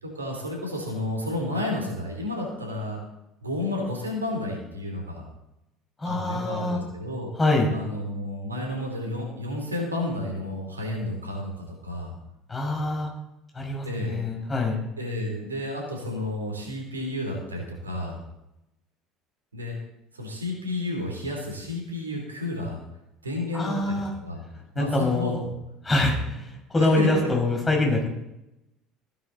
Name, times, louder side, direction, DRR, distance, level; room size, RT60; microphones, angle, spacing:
voice 1, 0.0-3.0 3.4-5.2 6.0-7.3 7.7-12.1 13.8-14.2 15.0-18.2 19.5-19.8 20.1-22.8 23.2-24.4 24.7-25.3 26.8-27.1, left 1 dB, 85° right, 1 dB, 3.1 m, -31 dB
voice 2, 6.0-6.8 7.4-7.7 12.5-13.1 13.5-14.8 23.5-24.1 24.8-25.4 25.8-28.1, left 2 dB, 20° left, 0 dB, 5.3 m, -25 dB
16.0 x 9.5 x 4.0 m, 0.88 s
figure-of-eight pair, 65°, 0 cm